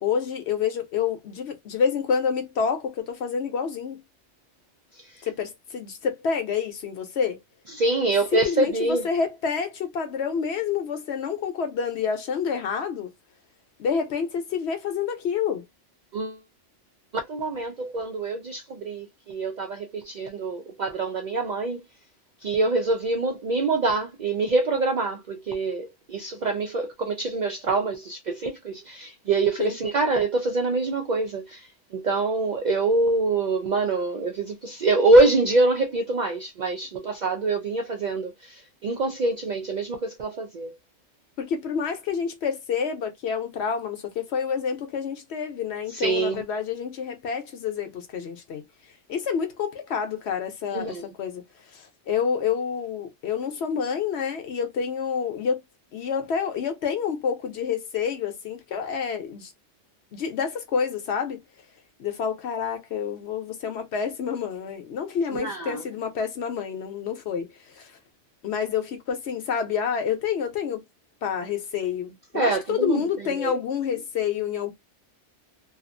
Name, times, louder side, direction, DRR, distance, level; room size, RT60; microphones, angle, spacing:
voice 1, 0.0-4.0 5.2-7.4 8.3-13.1 13.8-15.6 29.6-29.8 41.4-48.6 49.1-51.4 51.7-55.6 55.9-59.5 60.1-61.4 62.0-67.5 67.7-67.9 68.4-70.8 71.2-74.7, left 6 dB, 65° left, 1.0 m, -28 dB
voice 2, 7.7-9.1 16.1-16.4 17.3-21.8 22.4-31.7 31.9-40.7 45.9-46.4 50.7-51.0 65.3-65.8 72.3-73.0 73.4-73.6, right 3 dB, 65° right, 0.4 m, -25 dB
2.5 x 2.4 x 2.5 m
omnidirectional pair, 1.2 m